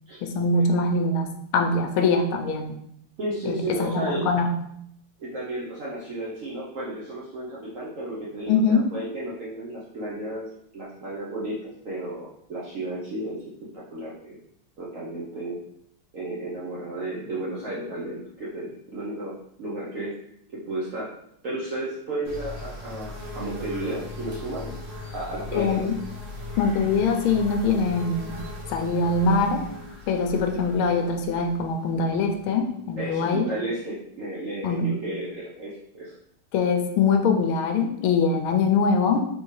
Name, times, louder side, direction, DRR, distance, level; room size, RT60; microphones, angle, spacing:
voice 1, 0.2-2.8 3.4-4.6 8.5-8.9 25.5-25.9 26.6-28.4 28.7-29.6 30.1-33.5 34.6-34.9 36.5-39.3, left 4 dB, 75° left, 4 dB, 1.3 m, -23 dB
voice 2, 3.2-4.3 5.2-10.4 10.7-13.4 13.7-14.4 14.8-15.6 16.1-20.2 20.5-21.1 21.4-24.7 25.1-25.9 33.0-36.1, right 1 dB, 75° right, -7 dB, 0.7 m, -33 dB
sound 1, 22.2-32.9, left 2 dB, 55° right, 1.4 m, -38 dB
4.0 x 3.5 x 3.1 m, 0.73 s
omnidirectional pair, 2.4 m